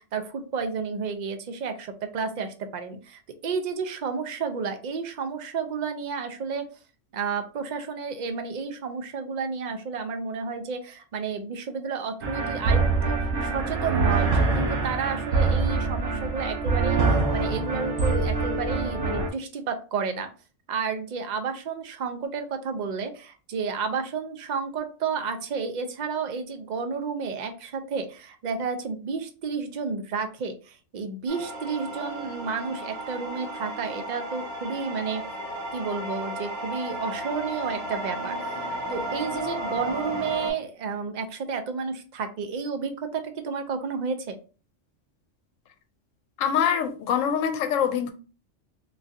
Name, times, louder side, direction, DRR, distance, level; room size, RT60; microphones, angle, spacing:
voice 1, 0.0-6.7 7.1-20.3 20.7-35.2 35.7-44.4, right 5 dB, 60° right, 0.4 m, -31 dB
sound 1, 12.2-19.3, right 3 dB, 80° right, 1.2 m, -24 dB
sound 2, 31.3-40.5, right 1 dB, 40° right, 1.1 m, -34 dB
voice 2, 46.4-48.1, left 8 dB, 85° left, 1.0 m, -24 dB
3.9 x 2.4 x 2.6 m
omnidirectional pair, 1.3 m